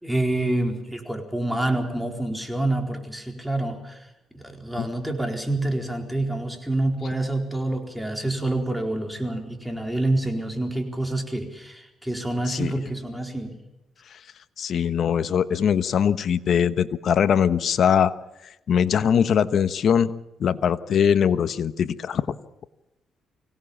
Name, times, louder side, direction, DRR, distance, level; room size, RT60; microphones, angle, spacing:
voice 1, 0.0-4.1 4.3-13.6, right 2 dB, 5° right, 4 dB, 4.2 m, -27 dB
voice 2, 14.6-18.1 18.7-20.1 20.4-22.2, left 8 dB, 60° left, 13 dB, 1.1 m, -21 dB
24.0 x 18.0 x 7.3 m, 0.95 s
cardioid pair, 90°, 0 cm